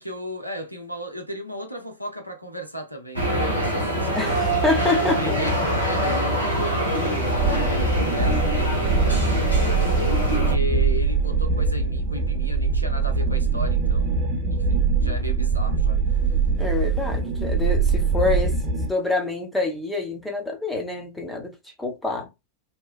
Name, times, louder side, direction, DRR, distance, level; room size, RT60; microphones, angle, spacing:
voice 1, 0.0-4.4 4.7-16.4, equal, 90° right, 0.6 m, -36 dB
sound 1, 3.1-10.5, right 1 dB, 85° left, 0.8 m, -24 dB
sound 2, 4.1-10.4, left 6 dB, 55° left, 0.6 m, -38 dB
voice 2, 4.2-5.4 16.6-22.3, left 3 dB, 5° left, 0.9 m, -27 dB
sound 3, 7.4-18.9, right 4 dB, 25° right, 0.9 m, -22 dB
2.9 x 2.2 x 2.3 m
figure-of-eight pair, 90°, 0 cm